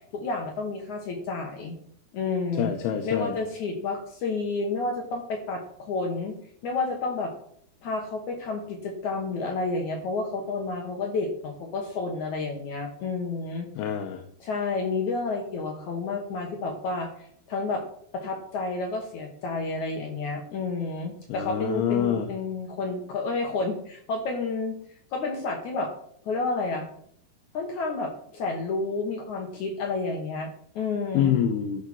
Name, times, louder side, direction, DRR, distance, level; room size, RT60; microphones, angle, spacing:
voice 1, 0.1-1.8 2.1-2.7 3.0-6.4 6.6-7.3 7.8-13.7 14.4-17.8 18.1-24.8 25.1-25.9 26.3-26.9 27.5-31.3, left 3 dB, 60° left, 2 dB, 2.2 m, -30 dB
voice 2, 2.6-3.3 13.8-14.2 21.3-22.3 31.1-31.8, left 9 dB, 80° left, 4 dB, 2.8 m, -26 dB
13.5 x 5.7 x 6.1 m, 0.66 s
omnidirectional pair, 4.7 m